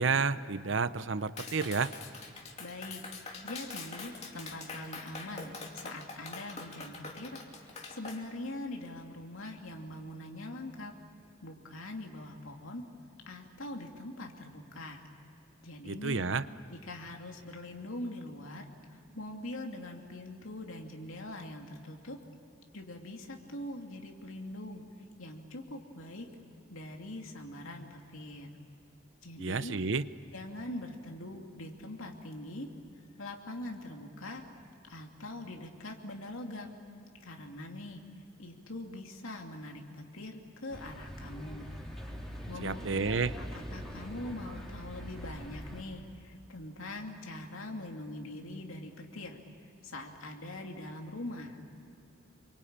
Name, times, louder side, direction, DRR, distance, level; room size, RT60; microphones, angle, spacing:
voice 1, 0.0-1.9 15.8-16.4 29.4-30.0 42.6-43.3, right 4 dB, 65° right, 14 dB, 0.8 m, -30 dB
Clapping, 1.4-8.2, left 3 dB, 30° left, 2.7 m, -44 dB
voice 2, 2.6-3.0 3.4-10.9 11.4-12.9 13.3-15.0 15.6-16.3 16.7-22.2 22.7-24.8 25.2-26.3 26.7-28.5 29.2-29.7 30.3-32.7 33.2-34.4 34.9-36.8 37.2-38.0 38.4-41.7 42.5-42.8 43.4-51.6, left 1 dB, 80° left, 2 dB, 2.6 m, -43 dB
sound 1, 40.7-45.8, equal, ahead, 3.6 m, -43 dB
27.5 x 24.0 x 8.8 m, 2.7 s
head